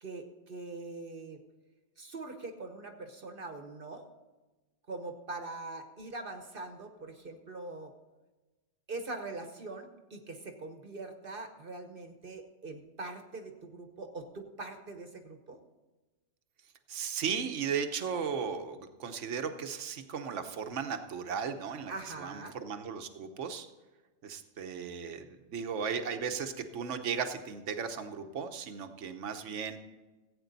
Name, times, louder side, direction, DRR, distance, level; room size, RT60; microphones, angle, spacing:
voice 1, 0.0-1.4 2.0-4.0 4.9-7.9 8.9-15.6 21.9-22.6, right 3 dB, 50° right, 6 dB, 1.2 m, -43 dB
voice 2, 16.9-21.9 22.2-23.7 24.2-29.8, right 6 dB, 80° right, 7 dB, 1.2 m, -36 dB
16.0 x 8.7 x 4.0 m, 1.2 s
omnidirectional pair, 1.2 m